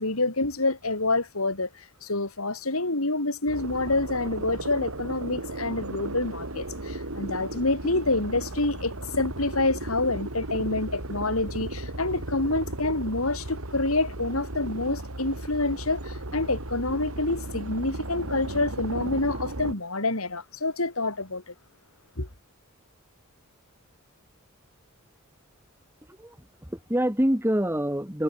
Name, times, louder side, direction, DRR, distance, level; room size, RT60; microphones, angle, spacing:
voice 1, 0.0-21.5 22.2-22.3, left 2 dB, 80° left, 4.2 m, -27 dB
sound 1, 3.5-19.7, right 1 dB, 90° right, 3.8 m, -35 dB
voice 2, 26.1-28.2, equal, 10° right, 3.0 m, -26 dB
head